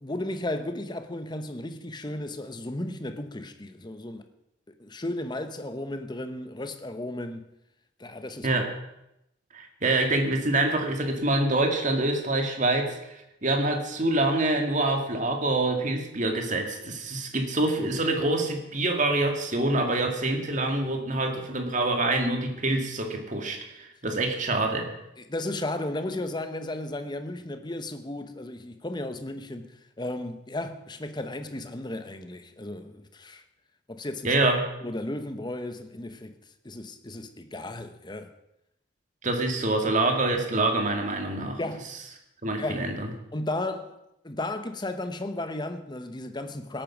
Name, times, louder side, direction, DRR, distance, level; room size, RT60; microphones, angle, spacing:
voice 1, 0.0-4.2 4.8-7.5 8.0-8.5 25.2-33.4 33.9-34.3 34.8-36.4 36.6-38.3 41.6-41.9 42.6-42.9 43.3-44.0 44.2-46.8, left 1 dB, 25° left, 1.0 m, -34 dB
voice 2, 9.5-13.0 13.4-24.9 34.2-34.6 39.2-41.6 42.4-43.1, right 2 dB, 40° right, 2.0 m, -26 dB
17.5 x 8.9 x 6.1 m
head